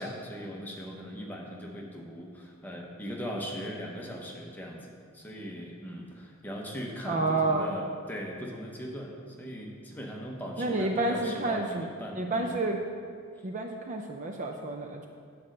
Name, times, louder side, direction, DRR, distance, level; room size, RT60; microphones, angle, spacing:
voice 1, 0.0-12.5, equal, 10° left, -1 dB, 0.9 m, -39 dB
voice 2, 7.1-7.8 10.6-11.8 12.1-12.8 13.4-15.1, right 2 dB, 35° right, 3 dB, 0.4 m, -29 dB
8.7 x 4.2 x 6.4 m, 2.2 s
head